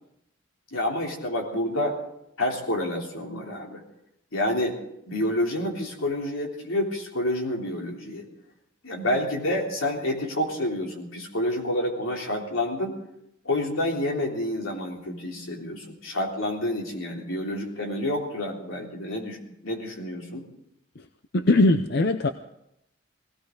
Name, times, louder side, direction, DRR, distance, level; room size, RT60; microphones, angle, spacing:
voice 1, 0.7-2.0 2.4-3.8 4.3-4.8 5.1-8.2 8.8-13.0 13.4-19.4 19.6-20.5, left 1 dB, 85° left, 0 dB, 3.4 m, -28 dB
voice 2, 21.3-22.3, left 2 dB, 55° left, 9 dB, 0.6 m, -20 dB
19.0 x 17.0 x 3.9 m, 0.80 s
head